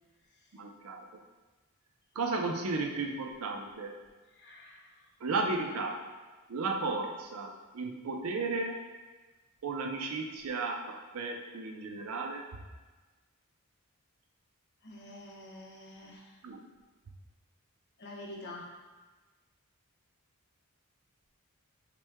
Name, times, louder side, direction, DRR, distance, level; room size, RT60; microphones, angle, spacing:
voice 1, 0.5-1.1 2.1-4.0 5.2-6.0 6.5-8.8 9.6-12.4 16.4-16.6, right 3 dB, 70° right, 3 dB, 0.5 m, -34 dB
voice 2, 4.4-4.9 14.8-16.2 18.0-18.7, left 1 dB, 50° left, -1 dB, 0.7 m, -46 dB
5.9 x 2.2 x 3.4 m, 1.3 s
head